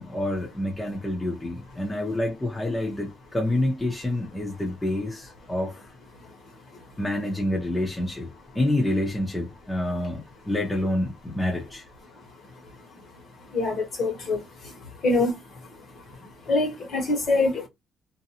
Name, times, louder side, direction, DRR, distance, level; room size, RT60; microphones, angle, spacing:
voice 1, 0.0-5.8 7.0-8.3 8.5-11.8, left 1 dB, 10° left, 0.7 m, -27 dB
voice 2, 13.5-14.4 15.0-15.3 16.5-17.7, left 2 dB, 45° left, 1.3 m, -24 dB
2.6 x 2.2 x 2.8 m
cardioid pair, 170°, 0 cm